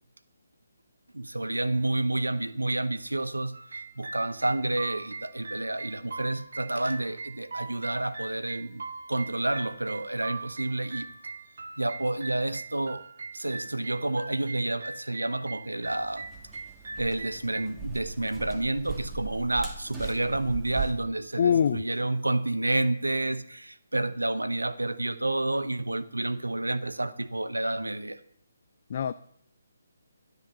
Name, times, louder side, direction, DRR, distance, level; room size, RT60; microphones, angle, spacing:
voice 1, 1.1-8.8 9.1-11.1 11.8-13.0 13.3-16.3 17.0-28.2, right 2 dB, 85° right, 0.8 m, -29 dB
sound 1, 3.5-17.7, right 3 dB, 60° right, 1.0 m, -41 dB
sound 2, 15.8-20.9, right 5 dB, 10° right, 2.1 m, -39 dB
voice 2, 21.4-21.9 28.9-29.1, left 8 dB, 45° left, 0.5 m, -23 dB
12.5 x 8.2 x 6.8 m
figure-of-eight pair, 145°, 0 cm